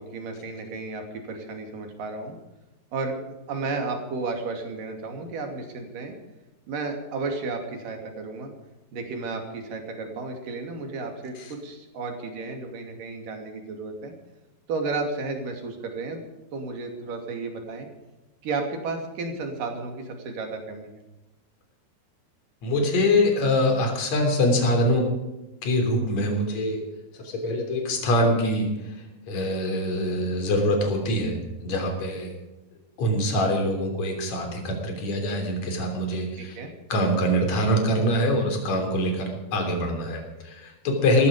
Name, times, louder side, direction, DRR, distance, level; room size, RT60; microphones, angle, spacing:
voice 1, 0.0-2.4 2.9-3.2 3.5-6.2 6.7-8.5 8.9-14.1 14.7-16.2 16.5-17.9 18.4-20.9 36.4-36.7, right 3 dB, 55° right, 3 dB, 4.0 m, -33 dB
voice 2, 22.6-25.0 25.6-26.8 27.2-28.7 29.3-31.4 31.6-32.3 33.0-36.5 36.9-41.3, left 1 dB, 45° left, 3 dB, 4.4 m, -24 dB
18.5 x 14.5 x 5.1 m, 1.0 s
omnidirectional pair, 4.7 m